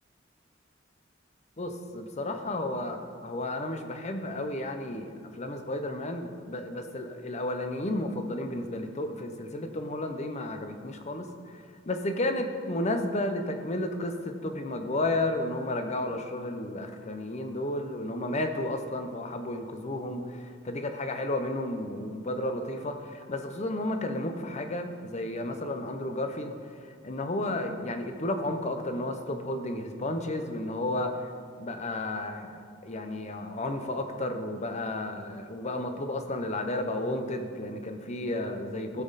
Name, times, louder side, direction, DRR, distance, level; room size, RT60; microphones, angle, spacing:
voice 1, 1.6-26.5 26.8-31.3 31.6-39.0, left 1 dB, 35° left, 6 dB, 0.8 m, -32 dB
15.0 x 6.0 x 4.0 m, 2.1 s
head